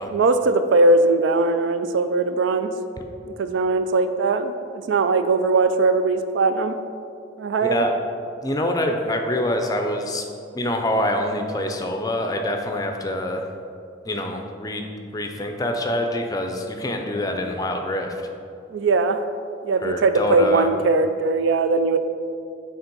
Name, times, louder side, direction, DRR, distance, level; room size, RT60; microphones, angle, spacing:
voice 1, 0.0-2.7 3.3-6.8 7.4-7.8 18.7-19.2 19.6-22.0, right 3 dB, 80° right, 10 dB, 0.4 m, -20 dB
voice 2, 7.6-7.9 8.4-10.3 10.5-13.5 14.0-18.3 19.8-20.7, left 1 dB, 20° left, 4 dB, 0.4 m, -25 dB
7.1 x 3.4 x 5.3 m, 2.5 s
head